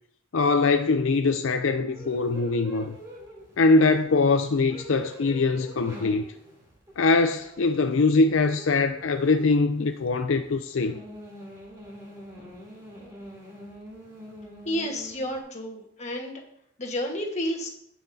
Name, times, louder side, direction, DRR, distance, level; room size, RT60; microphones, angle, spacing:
voice 1, 0.3-3.0 3.6-6.2 7.0-11.0, left 3 dB, 70° left, 0.5 m, -22 dB
sound 1, 1.9-15.4, equal, 15° right, 3.1 m, -45 dB
voice 2, 14.6-16.4 16.8-17.7, equal, 35° left, 1.5 m, -31 dB
17.5 x 5.8 x 2.8 m
head